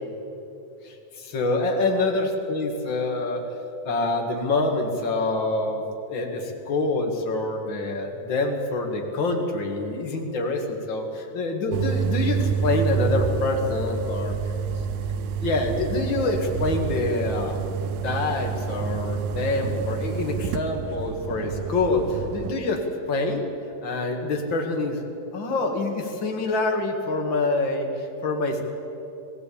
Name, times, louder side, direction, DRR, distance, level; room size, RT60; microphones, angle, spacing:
voice 1, 0.8-3.4 3.8-14.3 15.4-17.6 18.0-23.4 23.8-25.0 25.3-28.6, left 2 dB, 40° left, 3 dB, 2.1 m, -26 dB
sound 1, 11.7-22.5, right 6 dB, 75° right, 2.2 m, -28 dB
20.5 x 15.5 x 8.5 m, 3.0 s
omnidirectional pair, 3.9 m